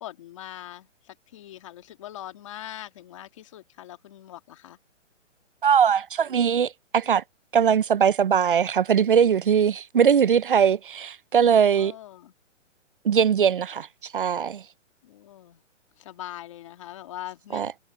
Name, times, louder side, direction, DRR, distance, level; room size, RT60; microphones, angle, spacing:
voice 1, 0.0-4.8 11.7-12.3 15.0-15.6 16.0-17.8, left 13 dB, 25° left, 1.7 m, -42 dB
voice 2, 5.6-7.2 7.5-11.9 13.0-13.9 14.1-14.6 17.5-17.7, right 7 dB, 45° right, 0.5 m, -21 dB
hypercardioid pair, 175°, 37 cm